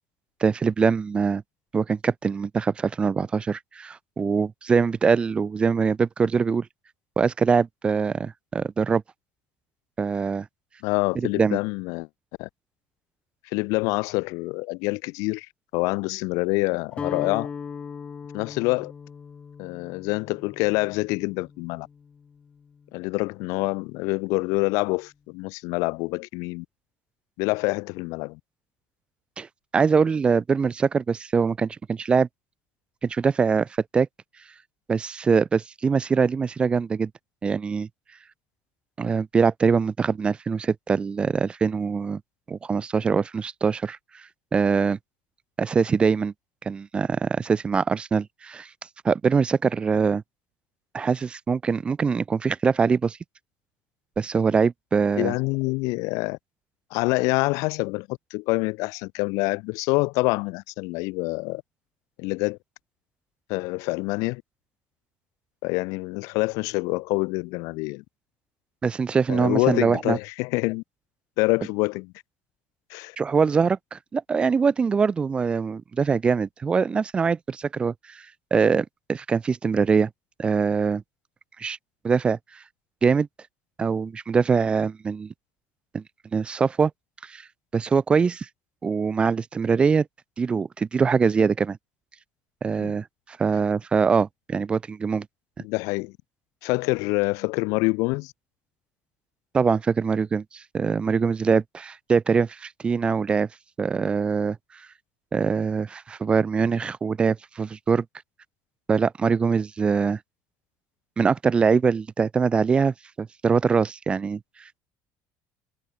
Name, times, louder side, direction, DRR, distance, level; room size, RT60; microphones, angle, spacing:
voice 1, 0.4-1.4 1.7-6.7 7.2-9.0 10.0-10.4 11.1-11.6 29.4-29.5 29.7-32.3 33.0-33.7 33.9-34.1 34.9-37.1 37.4-37.9 39.0-42.2 42.5-44.2 44.5-45.0 45.6-46.3 46.6-48.7 49.0-50.2 50.9-53.2 54.2-55.3 68.8-70.2 73.2-78.2 78.5-80.1 80.4-81.0 81.6-81.8 82.0-82.6 83.0-83.3 83.8-85.3 85.9-86.0 86.3-86.9 87.2-87.5 87.7-88.5 88.8-90.1 90.4-91.8 92.6-95.3 99.5-103.5 103.8-104.6 105.3-108.0 108.9-110.2 111.2-114.4, right 5 dB, 15° right, 1.6 m, -23 dB
voice 2, 10.8-12.1 12.4-12.5 13.4-15.5 15.7-17.5 18.3-18.9 19.6-21.9 22.9-26.6 27.4-28.4 55.1-56.4 56.9-61.6 62.2-62.6 63.5-64.4 65.6-68.0 69.3-70.8 71.4-72.1 72.9-73.2 92.7-93.0 95.6-96.2 96.6-98.3, left 26 dB, 70° left, 0.8 m, -26 dB
Guitar, 16.9-23.0, left 6 dB, 20° left, 2.5 m, -39 dB
cardioid pair, 180°, 6 cm